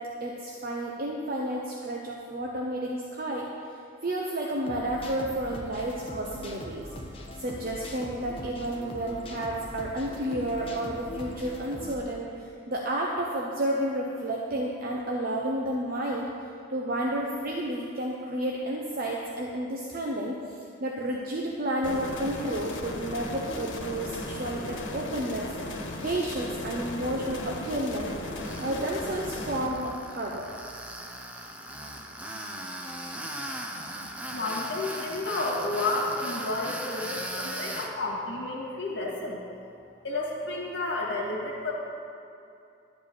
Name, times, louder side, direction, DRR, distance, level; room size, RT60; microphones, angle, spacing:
voice 1, 0.0-3.5 4.0-6.9 7.4-25.5 26.0-28.2 28.6-30.5, right 1 dB, 50° right, -2 dB, 0.8 m, -31 dB
sound 1, 4.7-12.0, equal, 30° left, 1.1 m, -41 dB
sound 2, 21.8-29.7, left 2 dB, 90° left, 1.4 m, -36 dB
Tools, 28.4-37.9, right 1 dB, 5° right, 0.7 m, -38 dB
voice 2, 34.3-39.4 40.0-41.7, left 2 dB, 70° left, -2 dB, 2.1 m, -31 dB
12.0 x 4.9 x 8.4 m, 2.7 s
head